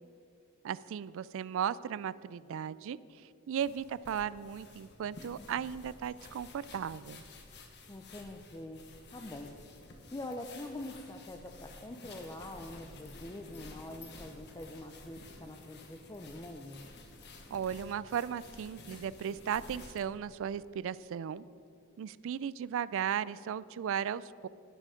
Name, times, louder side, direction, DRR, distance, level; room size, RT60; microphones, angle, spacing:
voice 1, 0.6-3.0 3.5-7.2 17.5-21.4 22.0-24.5, right 8 dB, 65° right, 19 dB, 0.3 m, -36 dB
sound 1, 3.6-20.1, left 2 dB, 55° left, 1.3 m, -52 dB
voice 2, 7.9-8.8 9.1-9.5 10.1-16.9, left 1 dB, 15° left, 4 dB, 0.5 m, -44 dB
11.5 x 10.0 x 5.1 m, 2.9 s
head